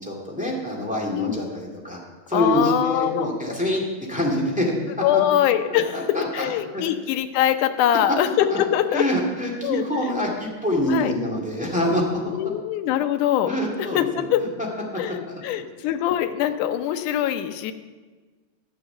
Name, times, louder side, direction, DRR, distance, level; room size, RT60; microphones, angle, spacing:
voice 1, 0.0-2.0 2.3-3.8 4.1-4.7 5.1-5.3 5.7-6.5 6.7-6.8 8.5-8.6 8.9-12.4 13.5-14.3 15.3-15.4, equal, 5° right, -2 dB, 1.6 m, -25 dB
voice 2, 2.3-3.3 5.0-9.1 9.6-10.1 10.9-11.1 12.3-13.5 13.8-14.4 15.0-17.7, left 11 dB, 90° left, 9 dB, 2.2 m, -23 dB
12.0 x 7.3 x 6.8 m, 1.3 s
omnidirectional pair, 3.5 m